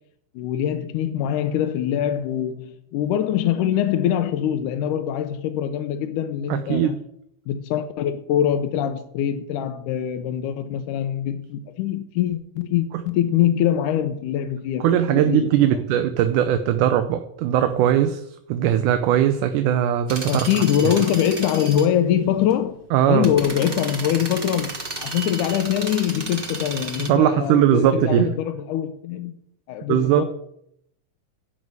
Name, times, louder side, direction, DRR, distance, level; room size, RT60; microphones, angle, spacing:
voice 1, 0.4-7.0 7.5-15.8 20.3-22.8 23.1-29.3 29.7-30.2, left 10 dB, 85° left, 2.2 m, -23 dB
voice 2, 6.5-7.0 14.8-20.5 20.8-20.9 22.9-23.3 27.1-28.3 29.9-30.2, right 10 dB, 90° right, 2.3 m, -20 dB
sound 1, 20.1-27.1, right 3 dB, 45° right, 0.6 m, -33 dB
11.5 x 7.6 x 7.8 m
omnidirectional pair, 3.5 m